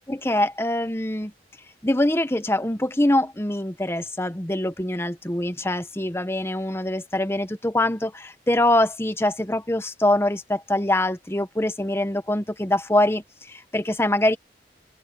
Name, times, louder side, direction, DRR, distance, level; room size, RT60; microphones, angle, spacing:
voice 1, 0.1-1.3 1.8-14.4, left 1 dB, 15° left, 0.9 m, -24 dB
head